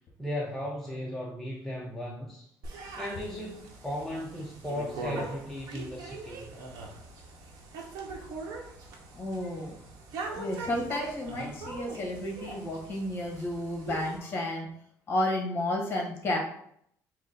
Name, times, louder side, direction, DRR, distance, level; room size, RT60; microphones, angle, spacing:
voice 1, 0.2-2.5 3.0-6.5, left 1 dB, 5° left, -3 dB, 0.5 m, -36 dB
sound 1, 2.6-14.2, right 3 dB, 75° right, 0.9 m, -41 dB
voice 2, 9.1-9.8 10.3-14.7 15.1-16.4, left 1 dB, 35° left, 1 dB, 1.2 m, -32 dB
4.9 x 2.1 x 3.9 m, 0.67 s
cardioid pair, 145°, 6 cm